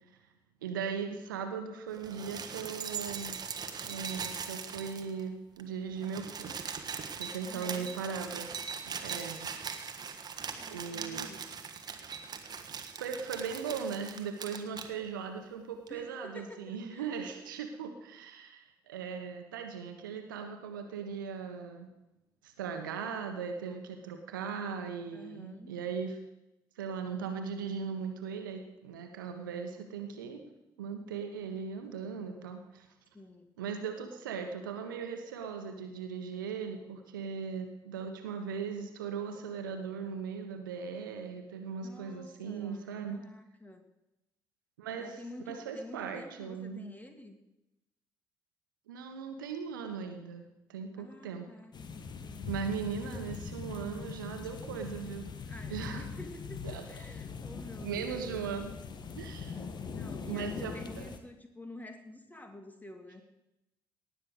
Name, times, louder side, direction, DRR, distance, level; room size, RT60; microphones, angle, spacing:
voice 1, 0.6-3.4 3.9-8.7 9.0-9.5 10.7-11.3 13.0-21.9 22.4-26.2 26.8-30.4 30.8-32.9 33.6-43.2 44.8-45.2 45.5-46.9 48.9-51.5 52.5-55.3 55.7-56.1 56.6-57.1 57.8-58.7 59.2-59.6 60.3-61.1, right 6 dB, 75° right, 6 dB, 1.3 m, -38 dB
sound 1, 1.9-5.3 5.6-5.7 5.9-14.9 15.9-16.0, right 6 dB, 40° right, 1.4 m, -40 dB
voice 2, 7.5-8.1 10.4-11.5 15.9-17.4 23.7-23.8 25.1-25.7 33.1-33.5 41.7-43.8 45.0-47.4 51.0-52.8 55.5-58.4 59.9-63.2, left 1 dB, 15° left, 6 dB, 2.3 m, -49 dB
sound 2, 51.7-61.2, left 5 dB, 40° left, 1.5 m, -42 dB
18.5 x 6.7 x 7.9 m, 0.93 s
figure-of-eight pair, 45°, 11 cm